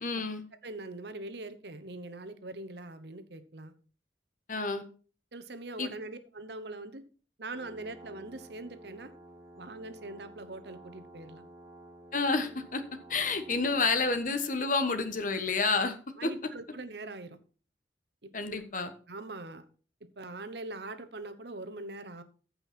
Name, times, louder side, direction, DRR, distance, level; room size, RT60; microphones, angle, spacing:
voice 1, 0.0-0.4 4.5-4.8 5.8-5.9 12.1-12.8 13.1-16.0 16.2-16.3 18.3-18.9, left 4 dB, 45° left, 9 dB, 1.3 m, -29 dB
voice 2, 0.6-3.7 5.3-7.0 7.4-9.1 9.6-11.4 14.6-14.7 16.2-17.4 18.2-18.3 18.7-19.6 20.2-22.2, right 2 dB, 65° right, 10 dB, 1.1 m, -42 dB
sound 1, 7.5-14.3, right 1 dB, 15° right, 3.3 m, -52 dB
15.0 x 5.6 x 4.4 m, 0.38 s
head